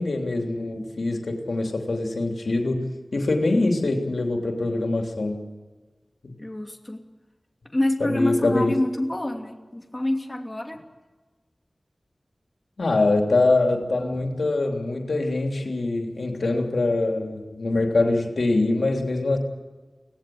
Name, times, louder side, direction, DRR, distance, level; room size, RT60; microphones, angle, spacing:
voice 1, 0.0-2.9 3.1-5.5 6.2-6.3 8.0-8.8 12.8-19.4, left 2 dB, 85° left, 2 dB, 3.2 m, -24 dB
voice 2, 6.4-7.0 7.7-10.8, left 1 dB, 20° left, 2 dB, 2.9 m, -27 dB
24.5 x 18.0 x 7.9 m, 1.3 s
wide cardioid pair, 50°, 0 cm